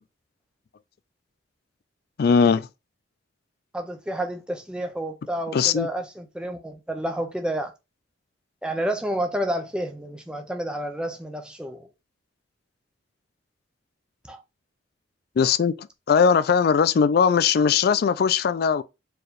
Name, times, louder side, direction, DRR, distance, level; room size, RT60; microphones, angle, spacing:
voice 1, 2.2-2.7 5.5-5.9 15.4-15.7 16.1-18.8, left 6 dB, 50° left, 0.3 m, -19 dB
voice 2, 3.7-7.7 8.6-11.9 14.2-14.4, right 1 dB, 5° right, 0.6 m, -30 dB
4.6 x 3.2 x 2.5 m
head